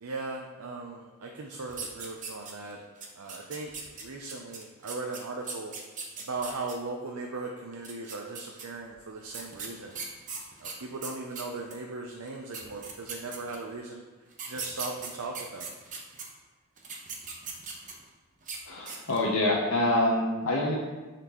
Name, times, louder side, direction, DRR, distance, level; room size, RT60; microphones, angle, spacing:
voice 1, 0.0-2.8 3.2-5.7 6.2-10.0 10.6-14.0 14.4-15.7, right 3 dB, 85° right, 1 dB, 0.6 m, -38 dB
sound 1, 1.7-2.7 3.0-6.7 7.7-8.6 9.3-11.8 12.3-12.4 12.5-13.7 14.3-16.2 16.8-18.1 18.4-18.6 18.9-19.3, right 5 dB, 35° right, 0.9 m, -39 dB
voice 2, 18.7-20.8, left 1 dB, 85° left, -3 dB, 0.8 m, -26 dB
9.9 x 4.2 x 3.0 m, 1.3 s
head